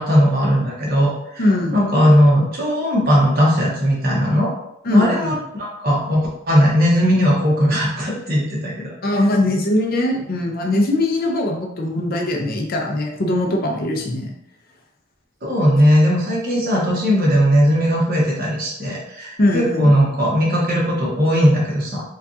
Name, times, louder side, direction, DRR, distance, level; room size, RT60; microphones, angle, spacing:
voice 1, 0.0-1.5 1.7-4.5 4.9-8.9 15.4-22.0, equal, 50° right, -4 dB, 1.2 m, -18 dB
voice 2, 1.4-1.8 4.8-5.3 9.0-14.3 19.4-19.9, left 1 dB, 50° left, 2 dB, 0.6 m, -20 dB
4.5 x 2.4 x 2.7 m, 0.79 s
head